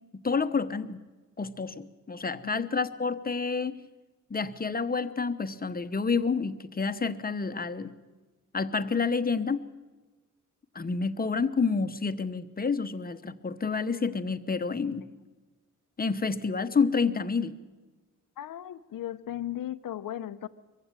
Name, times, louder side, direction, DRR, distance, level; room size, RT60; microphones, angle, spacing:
voice 1, 0.1-1.0 1.4-3.8 4.3-8.0 8.5-9.7 10.7-15.1 16.0-17.6, left 4 dB, 30° left, 10 dB, 1.0 m, -29 dB
voice 2, 2.4-2.7 18.4-20.5, left 12 dB, 90° left, 12 dB, 0.9 m, -36 dB
23.0 x 15.5 x 9.0 m, 1.3 s
wide cardioid pair, 105°, 32 cm